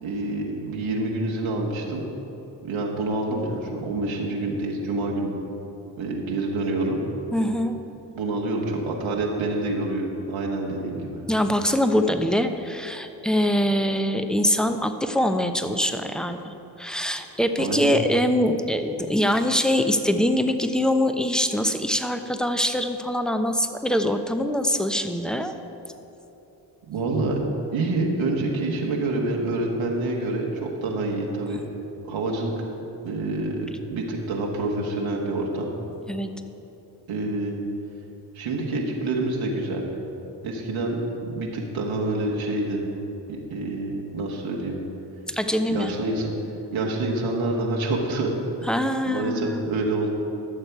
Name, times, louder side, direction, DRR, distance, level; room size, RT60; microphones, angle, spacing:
voice 1, 0.0-2.0 2.6-5.3 6.0-7.0 8.1-11.2 17.6-17.9 26.9-27.4 27.7-31.6 32.0-32.5 33.0-35.7 37.1-37.6 38.3-39.9 40.4-42.8 43.3-44.8 45.7-46.3 46.7-48.7 49.1-50.1, right 2 dB, 75° right, -1 dB, 1.5 m, -27 dB
voice 2, 7.3-7.8 11.3-25.5 36.1-36.3 45.3-45.9 48.7-49.7, equal, ahead, 7 dB, 0.8 m, -23 dB
14.0 x 6.6 x 4.7 m, 3.0 s
hypercardioid pair, 45°, 48 cm